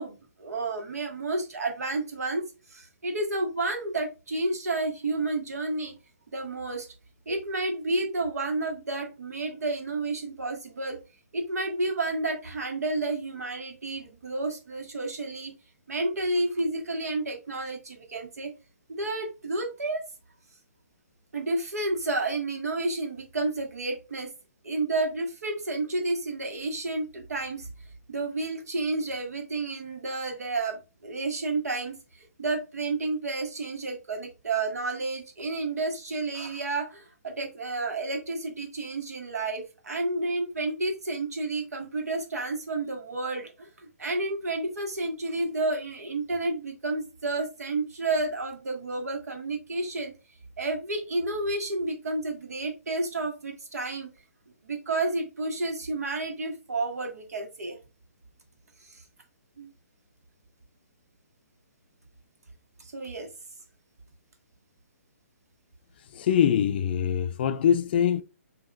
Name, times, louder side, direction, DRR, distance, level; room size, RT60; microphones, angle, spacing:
voice 1, 0.0-2.4 2.7-5.9 6.3-6.9 7.2-11.0 11.3-15.5 15.9-18.5 18.9-20.0 21.3-24.3 24.6-27.7 28.1-43.7 44.0-50.1 50.6-54.1 54.6-57.8 58.8-59.0 59.6-59.7 62.8-63.3, right 2 dB, 85° right, 1.6 m, -31 dB
voice 2, 66.1-68.2, left 9 dB, 40° left, 0.4 m, -23 dB
5.6 x 2.8 x 2.4 m
hypercardioid pair, 155°, 8 cm